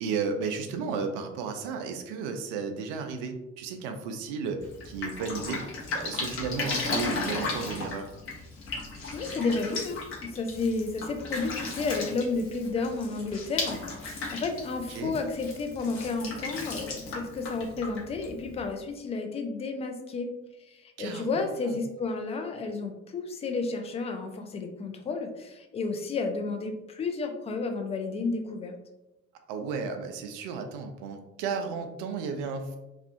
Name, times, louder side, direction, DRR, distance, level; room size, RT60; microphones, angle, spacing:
voice 1, 0.0-4.6 4.8-5.6 5.9-8.1 14.9-15.2 21.0-21.3 21.7-21.8 29.5-32.8, right 5 dB, 60° right, 6 dB, 0.4 m, -33 dB
Drip, 4.6-18.7, left 3 dB, 40° left, 0.8 m, -36 dB
voice 2, 9.1-20.3 20.6-28.7, left 3 dB, 20° left, 5 dB, 0.3 m, -32 dB
2.4 x 2.4 x 2.4 m, 0.95 s
figure-of-eight pair, 50°, 35 cm